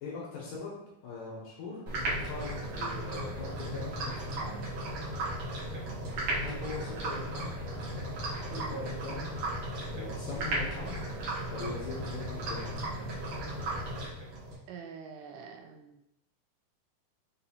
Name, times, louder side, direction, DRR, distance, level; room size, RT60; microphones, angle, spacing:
voice 1, 0.0-4.7 6.3-7.6 8.5-9.3 9.9-11.0 11.5-12.8, left 4 dB, 75° left, -4 dB, 2.1 m, -41 dB
sound 1, 1.9-14.6, right 1 dB, 75° right, 1.5 m, -35 dB
voice 2, 14.7-16.0, right 6 dB, 90° right, 4 dB, 2.6 m, -45 dB
6.3 x 2.7 x 2.8 m, 0.82 s
omnidirectional pair, 4.5 m